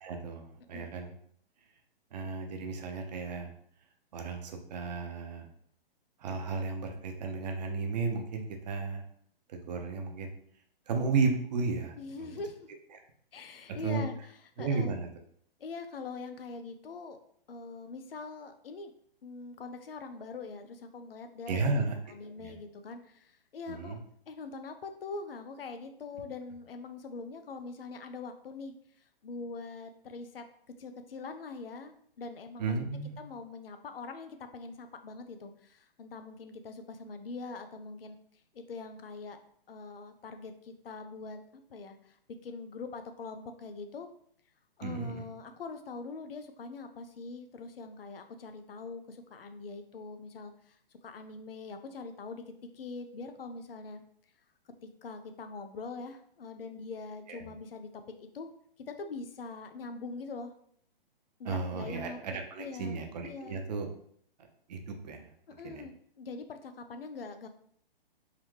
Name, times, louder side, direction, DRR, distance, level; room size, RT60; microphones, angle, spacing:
voice 1, 0.0-1.1 2.1-3.5 4.1-5.5 6.2-9.0 9.5-10.3 10.9-12.3 13.7-14.0 14.6-15.1 21.5-22.0 22.4-22.5 23.7-24.0 32.6-33.1 44.8-45.3 57.3-57.5 61.4-63.9 64.7-65.3 65.6-65.8, right 4 dB, 45° right, 4 dB, 0.8 m, -34 dB
voice 2, 12.0-12.7 13.3-15.0 15.6-17.2 17.5-18.9 19.2-24.0 24.3-28.7 29.2-30.5 30.8-32.8 33.2-38.2 38.5-39.4 39.7-41.4 41.7-42.2 42.4-44.1 44.8-50.8 51.0-54.0 54.8-58.5 58.9-60.5 61.4-63.6 65.6-67.5, left 4 dB, 70° left, 7 dB, 0.6 m, -43 dB
3.7 x 3.2 x 3.2 m, 0.63 s
figure-of-eight pair, 130°, 29 cm